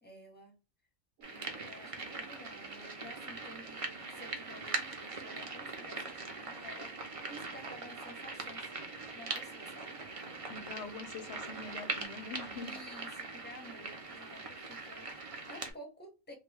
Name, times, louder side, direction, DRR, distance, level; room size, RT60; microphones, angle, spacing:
voice 1, 0.0-0.5 1.3-8.7 9.1-10.0 12.6-16.3, equal, 10° left, 0.8 m, -52 dB
sound 1, 1.2-15.7, right 3 dB, 40° right, 0.5 m, -42 dB
sound 2, 1.2-12.0, right 7 dB, 80° right, 1.0 m, -58 dB
voice 2, 10.5-12.8, left 4 dB, 65° left, 0.8 m, -44 dB
3.1 x 2.3 x 3.3 m
omnidirectional pair, 1.3 m